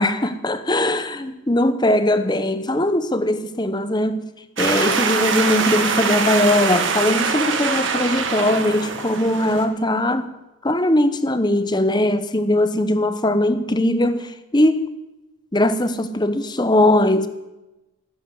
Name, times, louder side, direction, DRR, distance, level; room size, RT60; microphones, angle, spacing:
voice 1, 0.0-4.2 4.6-10.3 10.6-14.3 14.5-14.8 15.5-17.3, left 1 dB, 20° left, 1.0 m, -20 dB
sound 1, 4.6-9.6, right 5 dB, 55° right, 1.9 m, -23 dB
17.5 x 10.0 x 7.8 m
head